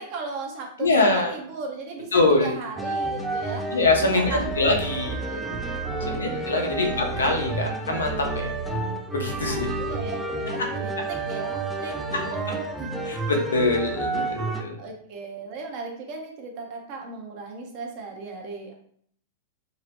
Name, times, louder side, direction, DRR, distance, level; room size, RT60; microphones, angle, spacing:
voice 1, 0.0-4.5 5.3-5.5 5.8-6.8 9.3-13.1 14.2-14.4 14.8-18.7, right 3 dB, 50° right, 1 dB, 0.7 m, -37 dB
voice 2, 0.8-1.3 2.1-2.6 3.7-5.1 6.1-8.5 9.1-9.7 13.1-14.7, left 3 dB, 90° left, 2 dB, 0.6 m, -23 dB
sound 1, 2.8-14.6, right 2 dB, 5° right, 0.3 m, -30 dB
sound 2, 4.3-10.1, right 5 dB, 75° right, 1.3 m, -37 dB
2.8 x 2.1 x 2.8 m, 0.63 s
hypercardioid pair, 110°, 0 cm